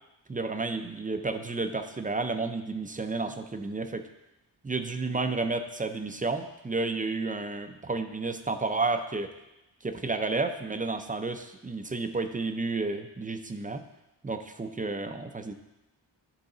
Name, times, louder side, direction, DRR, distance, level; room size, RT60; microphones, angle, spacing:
voice 1, 0.3-4.1 4.6-9.3 9.8-13.8 14.2-15.5, right 3 dB, 20° right, 7 dB, 0.4 m, -31 dB
11.5 x 4.0 x 3.8 m, 0.94 s
wide cardioid pair, 120°, 45 cm